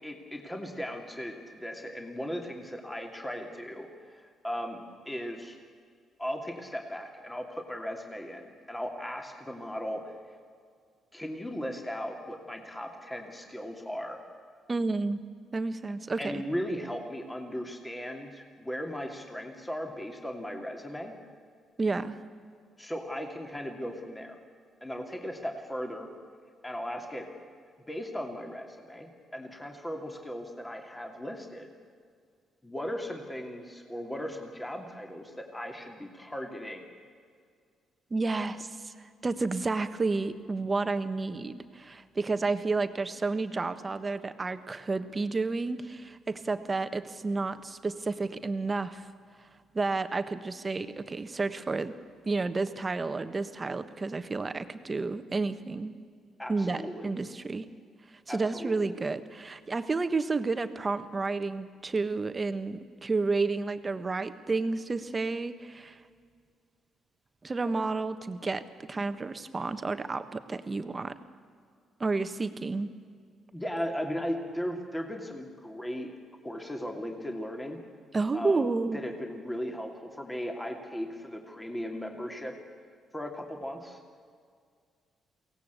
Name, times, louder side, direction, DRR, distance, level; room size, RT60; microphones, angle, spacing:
voice 1, 0.0-5.6 6.2-10.2 11.1-14.2 16.2-21.1 22.8-24.4 24.8-26.1 26.6-27.3 27.9-31.7 32.6-36.9 56.4-57.1 58.3-58.9 67.6-67.7 73.5-76.1 76.4-77.8 78.3-82.5 83.1-84.0, equal, 10° left, 3 dB, 2.7 m, -37 dB
voice 2, 14.7-15.2 15.5-16.4 21.8-22.2 38.1-38.9 39.2-49.1 49.7-51.9 52.2-55.9 56.5-57.6 58.3-66.0 67.4-71.1 72.0-72.9 78.1-79.0, right 3 dB, 30° right, 10 dB, 1.4 m, -31 dB
23.0 x 17.5 x 8.3 m, 2.1 s
cardioid pair, 90°, 0 cm